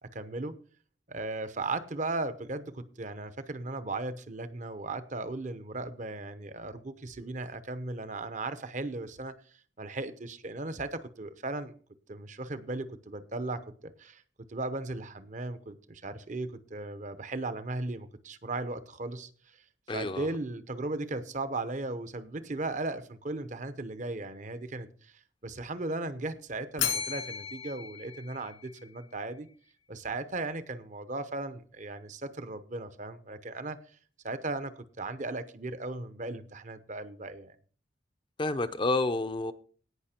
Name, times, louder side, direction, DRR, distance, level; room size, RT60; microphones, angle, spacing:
voice 1, 0.0-0.6 1.1-9.3 9.8-11.7 12.1-14.2 14.5-19.6 19.9-29.5 29.9-33.8 34.2-37.6, right 2 dB, 40° right, 12 dB, 0.9 m, -37 dB
voice 2, 19.9-20.3 38.4-39.5, left 2 dB, 25° left, 9 dB, 0.6 m, -29 dB
Bell, 26.8-29.0, left 8 dB, 90° left, 2.6 m, -35 dB
17.5 x 5.9 x 4.4 m, 0.43 s
head